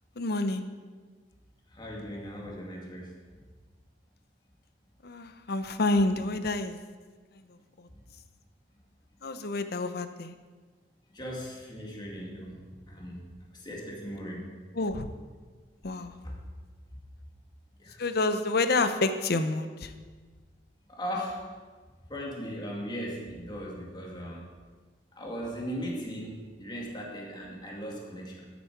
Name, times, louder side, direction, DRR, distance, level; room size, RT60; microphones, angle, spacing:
voice 1, 0.2-0.7 5.0-6.8 7.3-7.4 7.8-7.9 9.2-10.3 14.7-15.1 15.8-16.1 18.0-19.9, left 2 dB, 60° left, 10 dB, 0.8 m, -28 dB
voice 2, 1.7-3.1 7.9-8.0 11.1-12.6 12.9-13.2 13.5-14.5 16.2-16.4 17.8-18.0 20.9-21.5 22.1-24.4 25.1-28.5, equal, 25° left, -2 dB, 2.4 m, -38 dB
12.5 x 9.4 x 4.7 m, 1.4 s
head